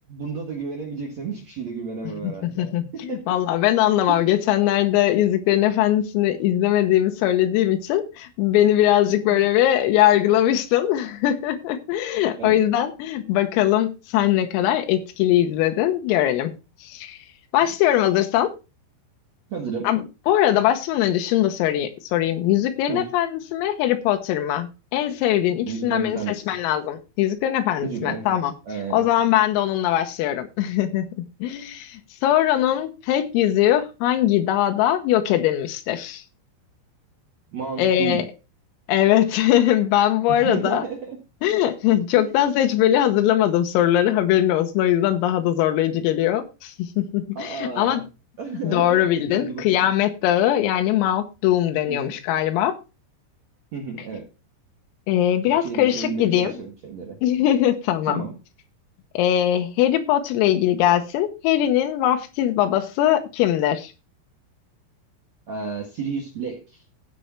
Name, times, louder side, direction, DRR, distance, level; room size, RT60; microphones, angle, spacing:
voice 1, 0.1-2.7 2.9-3.3 4.1-4.2 9.3-9.4 12.4-12.6 17.6-17.7 19.5-19.9 22.9-23.1 25.5-26.4 27.8-29.1 37.5-38.3 40.3-41.2 42.2-42.3 47.4-48.0 48.4-49.0 49.3-49.9 51.8-52.2 53.7-54.3 55.5-57.2 58.1-58.3 65.5-66.8, right 5 dB, 60° right, 1.9 m, -32 dB
voice 2, 2.2-16.5 16.8-17.2 17.5-18.5 19.8-28.5 28.9-31.1 31.4-36.2 37.8-38.3 38.9-40.9 41.4-48.0 48.6-52.8 55.1-56.5 57.2-58.2 59.2-63.9, left 12 dB, 85° left, 3.7 m, -21 dB
16.0 x 5.4 x 4.4 m
omnidirectional pair, 5.9 m